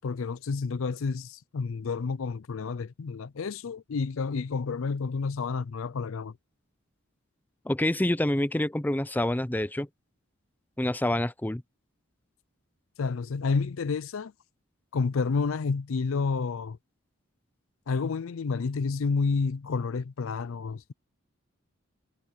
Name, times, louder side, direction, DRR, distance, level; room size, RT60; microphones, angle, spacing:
voice 1, 0.0-6.4 13.0-14.3 14.9-16.8 17.9-20.9, left 4 dB, 70° left, 0.5 m, -30 dB
voice 2, 7.6-9.9 10.8-11.6, left 1 dB, 10° left, 0.6 m, -27 dB
head